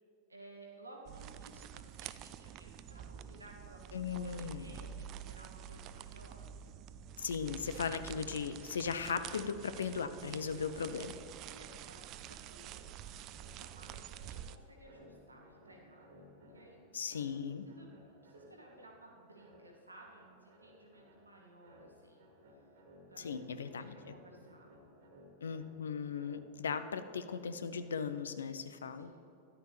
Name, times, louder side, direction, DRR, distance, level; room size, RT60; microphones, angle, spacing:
voice 1, 0.3-6.4 11.4-17.0 17.7-22.2 23.1-24.7 28.9-29.2, right 1 dB, 80° right, -1 dB, 1.3 m, -57 dB
sound 1, 1.1-14.6, right 10 dB, 40° right, 0.4 m, -48 dB
voice 2, 3.9-4.7 7.2-11.2 16.9-17.6 23.2-23.9 25.4-29.1, left 6 dB, 70° left, 11 dB, 0.5 m, -38 dB
sound 2, 10.4-28.3, equal, 55° right, 1.7 m, -60 dB
13.5 x 11.0 x 3.4 m, 2.6 s
figure-of-eight pair, 90°, 0 cm